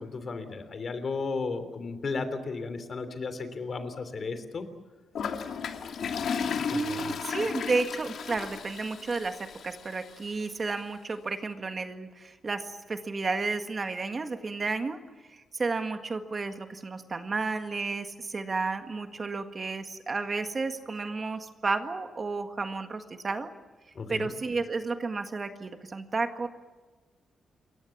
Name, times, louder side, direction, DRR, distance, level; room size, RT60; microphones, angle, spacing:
voice 1, 0.0-4.7 6.7-7.2 23.9-24.3, left 4 dB, 40° left, 10 dB, 3.4 m, -34 dB
Toilet flush, 5.1-10.2, left 6 dB, 65° left, 2.7 m, -34 dB
voice 2, 6.7-15.0 15.3-23.5 24.1-26.5, right 3 dB, 30° right, 6 dB, 1.8 m, -32 dB
28.5 x 23.0 x 7.3 m, 1.3 s
wide cardioid pair, 140°, 0 cm